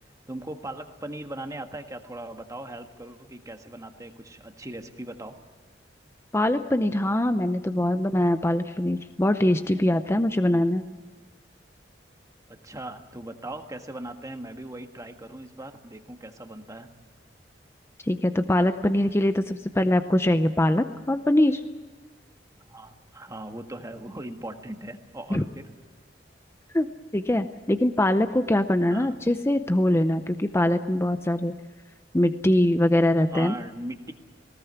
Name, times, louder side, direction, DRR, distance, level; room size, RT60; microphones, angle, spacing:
voice 1, 0.3-5.4 7.8-8.1 12.5-16.9 22.7-25.7 28.9-29.2 33.3-34.1, right 1 dB, 20° right, 6 dB, 1.6 m, -39 dB
voice 2, 6.3-10.9 18.0-21.6 25.3-25.4 26.7-31.6 32.1-33.6, left 1 dB, 15° left, 9 dB, 0.6 m, -23 dB
20.0 x 18.0 x 9.4 m, 1.4 s
head